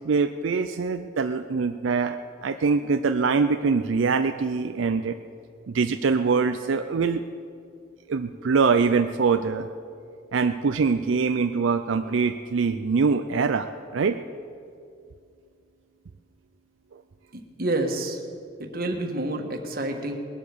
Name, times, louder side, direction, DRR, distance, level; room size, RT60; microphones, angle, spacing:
voice 1, 0.0-2.2 2.4-5.2 5.7-7.2 8.1-9.7 10.3-14.2, right 5 dB, 85° right, 8 dB, 0.5 m, -23 dB
voice 2, 17.3-18.2 18.6-20.2, right 2 dB, 50° right, 4 dB, 1.5 m, -28 dB
20.0 x 8.1 x 6.9 m, 2.3 s
head